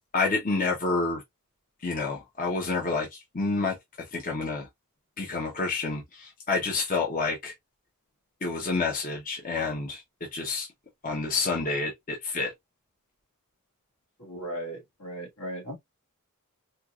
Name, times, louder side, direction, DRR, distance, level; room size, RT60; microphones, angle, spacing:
voice 1, 0.1-1.2 1.8-3.7 4.1-4.7 5.2-7.5 8.4-10.7 11.0-12.5, left 3 dB, 40° left, 0.8 m, -29 dB
voice 2, 14.2-15.7, right 1 dB, 70° left, 1.9 m, -37 dB
4.4 x 2.3 x 2.3 m
head